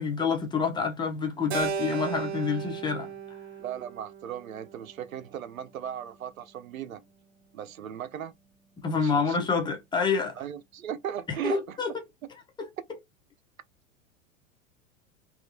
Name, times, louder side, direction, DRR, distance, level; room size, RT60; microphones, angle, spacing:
voice 1, 0.0-3.1 8.8-10.4 11.4-11.9, left 5 dB, 10° left, 0.4 m, -27 dB
Keyboard (musical), 1.5-5.9, right 6 dB, 50° right, 0.8 m, -36 dB
voice 2, 3.6-7.0 7.5-8.3 8.9-9.4 10.4-11.8, right 10 dB, 90° right, 0.5 m, -37 dB
2.7 x 2.3 x 2.6 m
hypercardioid pair, 100°, 40 cm